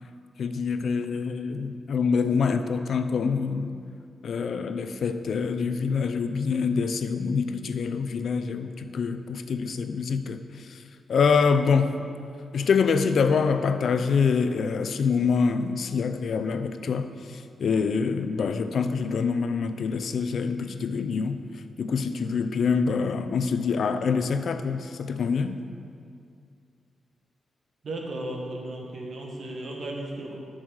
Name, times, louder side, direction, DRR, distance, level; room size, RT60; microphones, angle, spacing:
voice 1, 0.4-3.8 4.2-10.4 11.1-11.9 12.5-21.4 21.8-25.6, left 5 dB, 70° left, 9 dB, 0.5 m, -25 dB
voice 2, 27.8-30.4, right 1 dB, 60° right, 0 dB, 1.7 m, -35 dB
9.0 x 6.4 x 6.4 m, 2.3 s
cardioid pair, 85°, 0 cm